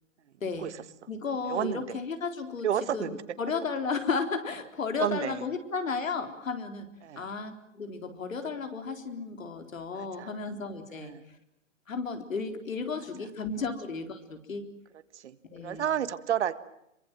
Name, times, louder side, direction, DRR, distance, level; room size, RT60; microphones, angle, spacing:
voice 1, 0.4-0.7 1.1-2.7 2.9-6.9 7.2-11.1 11.9-14.7 15.5-15.9, left 4 dB, 85° left, 6 dB, 4.1 m, -33 dB
voice 2, 1.5-2.0 2.6-3.2 5.0-5.5 7.0-7.3 9.9-10.3 10.9-11.3 15.1-16.5, right 10 dB, 60° right, 13 dB, 1.7 m, -31 dB
26.5 x 23.5 x 7.6 m, 0.81 s
hypercardioid pair, 150°, 39 cm